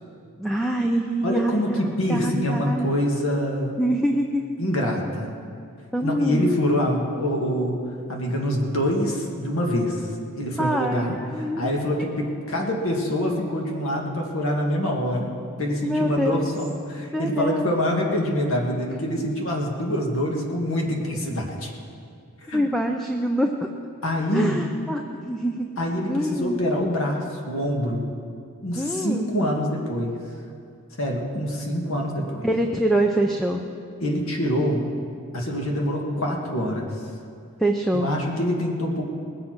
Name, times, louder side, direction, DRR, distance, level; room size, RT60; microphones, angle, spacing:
voice 1, 0.4-2.9 3.8-4.4 5.9-6.5 10.6-11.8 15.8-16.5 17.1-17.7 22.5-23.7 24.3-25.7 26.1-26.6 28.8-29.4 32.4-33.6 37.6-38.1, right 1 dB, ahead, 2 dB, 0.5 m, -25 dB
voice 2, 1.2-3.8 4.6-5.3 6.0-7.8 8.1-10.1 10.4-15.3 15.6-21.7 22.4-22.7 24.0-24.6 25.8-28.1 28.6-30.2 31.0-32.5 34.0-34.8 35.3-36.9 37.9-39.0, equal, 65° left, 0 dB, 2.0 m, -25 dB
20.5 x 7.6 x 6.0 m, 2.4 s
head